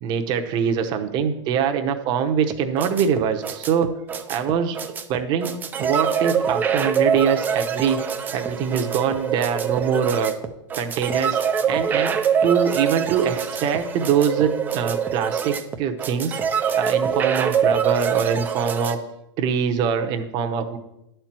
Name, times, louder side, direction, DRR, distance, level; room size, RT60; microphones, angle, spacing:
voice 1, 0.0-3.9 4.3-4.8 5.1-5.5 5.8-10.3 10.8-11.4 11.7-12.1 12.4-16.4 16.8-19.0 19.4-20.8, right 7 dB, 30° right, 6 dB, 0.8 m, -23 dB
sound 1, 2.5-18.9, right 7 dB, 10° right, 0.4 m, -24 dB
10.5 x 4.5 x 7.4 m, 0.87 s
hypercardioid pair, 150°, 16 cm